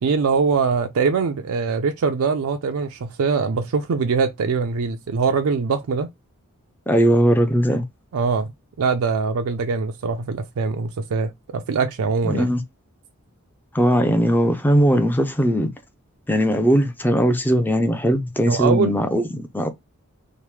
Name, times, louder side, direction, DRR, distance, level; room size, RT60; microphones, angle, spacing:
voice 1, 0.0-6.1 8.1-8.5 8.8-12.5 18.5-18.9, right 5 dB, 75° right, 0.4 m, -22 dB
voice 2, 6.9-7.8 12.2-12.6 13.7-15.7 16.3-19.7, equal, 10° left, 0.4 m, -19 dB
3.0 x 2.1 x 3.2 m
head